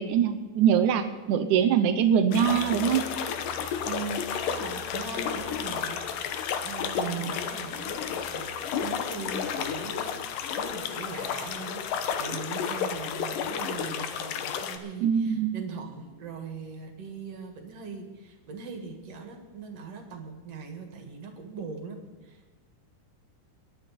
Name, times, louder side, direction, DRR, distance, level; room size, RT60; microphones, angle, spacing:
voice 1, 0.0-3.0 7.0-7.3 15.0-15.5, right 8 dB, 85° right, 8 dB, 1.7 m, -23 dB
sound 1, 2.3-14.8, left 7 dB, 70° left, 2.4 m, -32 dB
voice 2, 3.8-8.5 8.8-10.1 10.6-22.5, right 4 dB, 45° right, 4 dB, 2.6 m, -40 dB
23.0 x 10.5 x 4.3 m, 1.3 s
omnidirectional pair, 4.5 m